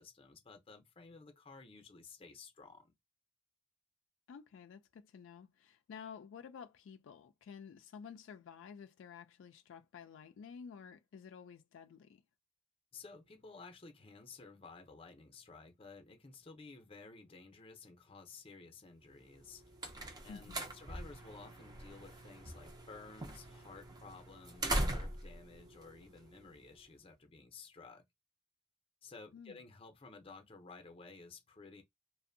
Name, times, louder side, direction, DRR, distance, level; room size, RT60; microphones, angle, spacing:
voice 1, 0.0-2.9 12.9-19.8 20.2-28.0 29.0-31.8, left 4 dB, 30° left, 0.6 m, -54 dB
voice 2, 4.3-12.2 20.3-20.8 29.3-29.6, left 6 dB, 85° left, 0.3 m, -52 dB
sound 1, 19.3-26.8, right 1 dB, 20° right, 0.4 m, -41 dB
2.5 x 2.0 x 2.6 m
head